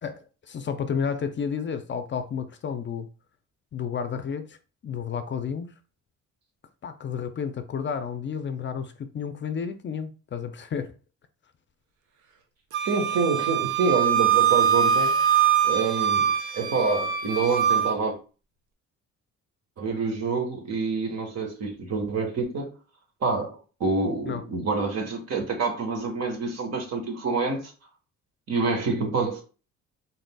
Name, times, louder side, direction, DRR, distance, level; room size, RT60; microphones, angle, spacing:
voice 1, 0.0-3.1 3.7-4.6 4.8-5.7 6.8-10.9 24.3-24.4, left 7 dB, 40° left, 0.5 m, -31 dB
Wind instrument woodwind instrument, 12.7-17.9, right 8 dB, 75° right, 0.8 m, -23 dB
voice 2, 12.8-15.2 15.6-18.2 19.8-22.7 23.2-27.7 28.5-29.4, right 4 dB, 60° right, 1.3 m, -27 dB
4.0 x 3.9 x 2.3 m
cardioid pair, 90°, 30 cm